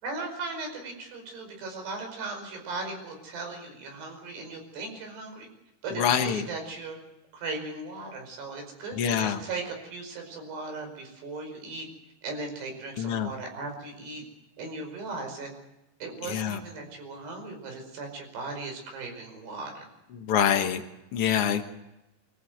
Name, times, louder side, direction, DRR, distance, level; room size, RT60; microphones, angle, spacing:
voice 1, 0.0-5.5 5.8-7.0 7.3-11.9 12.2-14.2 14.6-15.5 16.0-19.9, right 3 dB, 90° right, 4 dB, 7.2 m, -37 dB
voice 2, 6.0-6.4 9.0-9.4 13.0-13.3 16.2-16.6 20.1-20.8 21.1-21.6, left 8 dB, 90° left, 6 dB, 1.2 m, -25 dB
25.5 x 14.5 x 8.0 m, 0.94 s
omnidirectional pair, 4.6 m